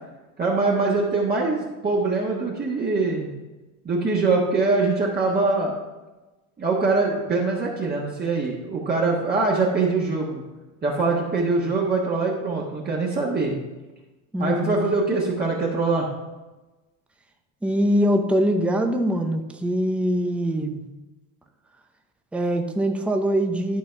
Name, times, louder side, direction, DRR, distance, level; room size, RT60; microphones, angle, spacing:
voice 1, 0.4-3.3 3.8-5.7 6.6-10.4 10.8-13.5 14.4-16.1, right 3 dB, 20° right, -4 dB, 1.4 m, -23 dB
voice 2, 14.3-14.8 17.6-20.8 22.3-23.8, equal, 5° right, 4 dB, 0.6 m, -23 dB
11.5 x 4.1 x 5.7 m, 1.1 s
supercardioid pair, 130°, 44 cm